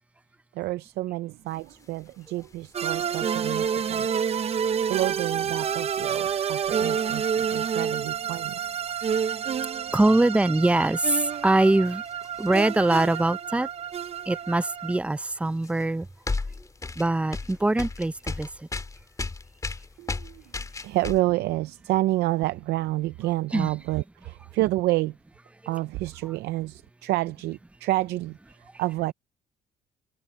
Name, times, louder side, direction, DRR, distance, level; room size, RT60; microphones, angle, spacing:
voice 1, 0.5-4.2 4.9-8.6 20.0-20.4 20.8-25.2 25.7-29.1, right 17 dB, 80° right, 0.5 m, -29 dB
sound 1, 1.5-13.2 13.7-14.7 15.2-21.2, left 3 dB, 20° left, 2.5 m, -38 dB
sound 2, 2.7-15.0, right 7 dB, 35° right, 0.8 m, -29 dB
voice 2, 9.9-12.0 12.4-13.7 14.3-16.1 17.0-18.7 23.5-23.7 25.6-25.7, right 2 dB, 5° right, 0.5 m, -23 dB
cardioid pair, 110°, 17 cm